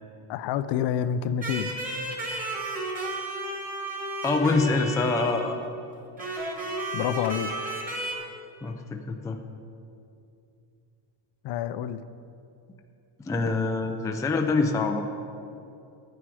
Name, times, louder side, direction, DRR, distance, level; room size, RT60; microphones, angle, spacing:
voice 1, 0.3-1.7 6.9-7.5 11.4-12.0, left 9 dB, 60° left, 13 dB, 0.5 m, -28 dB
sound 1, 1.4-5.7 6.2-8.1, right 2 dB, 15° right, 1.6 m, -33 dB
voice 2, 4.2-5.6 8.6-9.4 13.2-15.2, left 3 dB, 5° left, 4 dB, 0.3 m, -25 dB
12.5 x 9.3 x 4.8 m, 2.6 s
cardioid pair, 155°, 49 cm